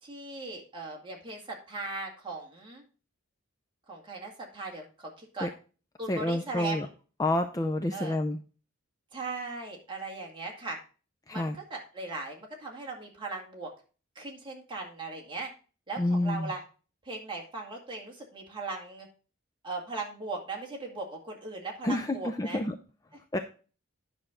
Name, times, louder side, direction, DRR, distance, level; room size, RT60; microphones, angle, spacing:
voice 1, 0.0-2.8 3.9-5.5 6.0-6.9 7.9-8.2 9.1-10.8 11.3-13.7 14.2-15.5 15.9-16.6 17.0-19.1 19.6-22.6, right 3 dB, 25° right, 0 dB, 2.1 m, -38 dB
voice 2, 6.1-6.9 7.2-8.4 11.3-11.6 16.0-16.5 21.8-22.7 23.3-23.4, left 1 dB, 15° left, 5 dB, 0.5 m, -28 dB
10.0 x 6.2 x 3.7 m, 0.36 s
head